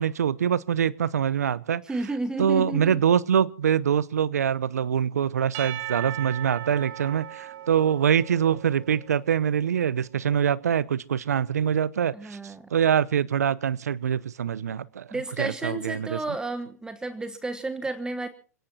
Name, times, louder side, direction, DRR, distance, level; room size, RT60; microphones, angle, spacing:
voice 1, 0.0-1.8 2.4-15.1 15.4-16.4, right 8 dB, 75° right, 19 dB, 0.9 m, -24 dB
voice 2, 1.8-3.0 12.1-12.7 15.1-18.3, right 2 dB, 10° right, 11 dB, 1.2 m, -32 dB
Percussion / Church bell, 5.5-9.7, right 13 dB, 45° right, 2.2 m, -38 dB
28.0 x 17.5 x 2.9 m, 0.40 s
hypercardioid pair, 105°, 9 cm